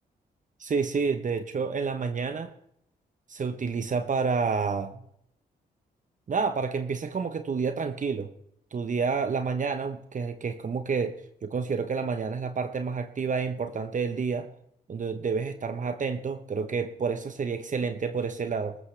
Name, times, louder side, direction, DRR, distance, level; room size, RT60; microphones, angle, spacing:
voice 1, 0.6-2.5 3.3-5.0 6.3-8.3 8.7-11.1 11.4-14.5 14.9-18.8, right 5 dB, 50° right, 9 dB, 1.0 m, -29 dB
21.5 x 13.5 x 3.4 m, 0.72 s
cardioid pair, 65°, 17 cm